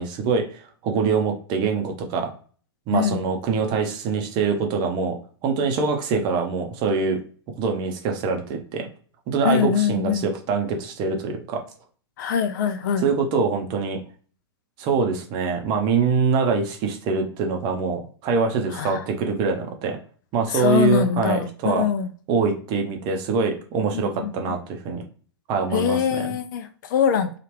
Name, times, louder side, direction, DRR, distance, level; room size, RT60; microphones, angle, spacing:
voice 1, 0.0-2.3 2.9-5.2 5.4-7.2 7.6-8.9 9.3-11.6 13.0-14.0 14.8-20.0 20.3-21.9 22.3-25.0 25.5-26.3, right 5 dB, 35° right, 0.7 m, -24 dB
voice 2, 9.4-10.3 12.2-13.0 18.7-19.0 20.5-22.1 23.9-24.3 25.7-27.4, left 8 dB, 45° left, 0.4 m, -23 dB
2.8 x 2.4 x 3.1 m
figure-of-eight pair, 105°, 13 cm